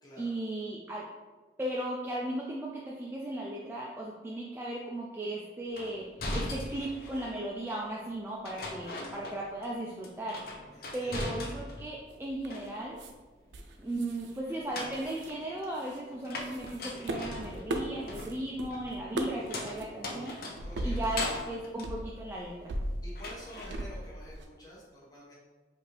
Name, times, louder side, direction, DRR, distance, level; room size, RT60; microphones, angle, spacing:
voice 1, 0.2-1.1 1.6-6.1 6.3-10.4 10.9-13.0 13.8-20.4 20.8-22.7, right 1 dB, 10° right, -4 dB, 0.3 m, -36 dB
sound 1, 5.8-7.4 8.4-9.7 10.0-11.9 12.2-13.1 14.5-22.8 23.2-23.8, left 2 dB, 55° left, 0.6 m, -40 dB
voice 2, 10.7-11.2 20.6-21.0 23.0-25.3, equal, 20° left, -7 dB, 0.8 m, -48 dB
sound 2, 12.1-12.7 13.0-13.1 13.5-14.4 14.7-16.0 16.4-18.7 18.9-19.5 19.8-19.9 20.6-21.5 21.8-24.5, right 1 dB, 85° right, 0.5 m, -38 dB
5.2 x 2.5 x 3.2 m, 1.3 s
head